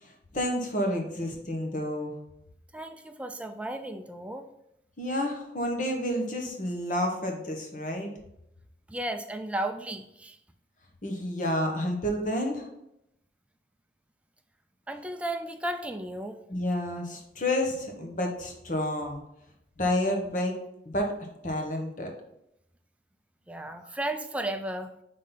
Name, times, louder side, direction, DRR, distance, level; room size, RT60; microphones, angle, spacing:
voice 1, 0.0-2.1 5.0-8.1 11.0-12.7 16.5-19.2 19.8-20.5 20.8-21.1 21.4-22.1, left 1 dB, 45° left, 2 dB, 1.1 m, -30 dB
voice 2, 2.7-4.5 8.9-10.4 14.9-16.4 23.5-24.9, right 1 dB, 5° right, 7 dB, 0.4 m, -34 dB
5.8 x 3.8 x 5.3 m, 0.82 s
head